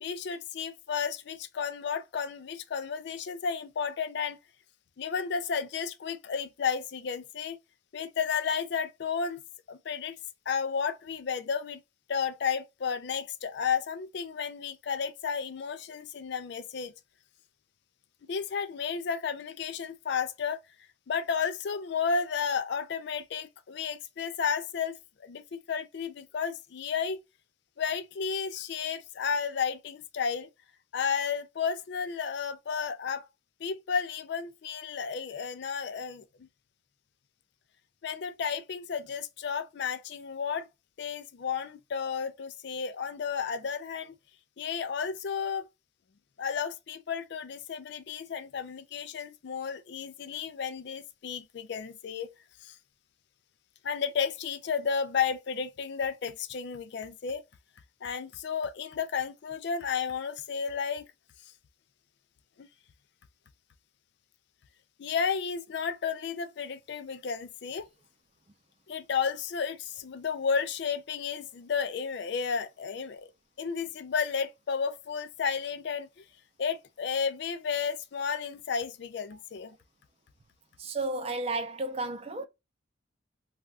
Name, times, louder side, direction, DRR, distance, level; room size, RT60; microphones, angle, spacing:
voice 1, 0.0-4.4 5.0-7.6 7.9-9.4 9.7-10.2 10.5-11.8 12.1-16.9 18.3-20.6 21.1-24.9 25.2-27.2 27.8-30.5 30.9-33.3 33.6-36.5 38.0-40.7 41.0-44.1 44.6-45.7 46.4-52.3 52.6-52.8 53.8-57.4 58.0-61.1 62.6-62.7 65.0-67.9 68.9-73.3 73.6-76.2 76.6-79.7, left 6 dB, 55° left, 0.4 m, -32 dB
voice 2, 80.8-82.5, right 2 dB, 30° right, 0.4 m, -32 dB
3.4 x 2.3 x 2.4 m
head